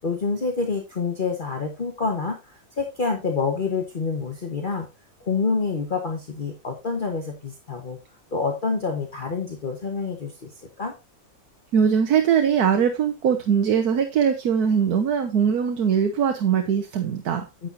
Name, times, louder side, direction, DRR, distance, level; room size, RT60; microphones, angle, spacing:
voice 1, 0.0-4.9 5.2-8.0 8.3-10.5 10.8-10.9 17.6-17.7, left 4 dB, 35° left, 2 dB, 1.3 m, -27 dB
voice 2, 11.7-17.5, right 7 dB, 85° right, 7 dB, 1.5 m, -21 dB
9.9 x 8.4 x 2.7 m, 0.24 s
omnidirectional pair, 1.6 m